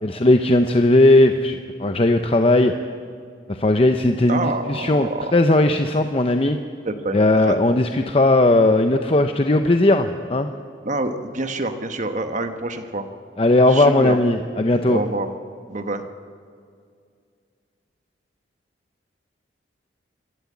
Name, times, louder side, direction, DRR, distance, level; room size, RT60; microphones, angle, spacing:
voice 1, 0.0-2.7 3.5-6.6 7.1-10.5 13.4-15.0, left 2 dB, 30° left, 6 dB, 0.7 m, -17 dB
voice 2, 4.3-5.3 6.8-7.2 7.5-7.6 10.8-13.1 13.7-14.2 14.9-15.3 15.7-16.0, right 2 dB, 40° right, 7 dB, 1.2 m, -26 dB
27.0 x 12.5 x 8.5 m, 2.2 s
head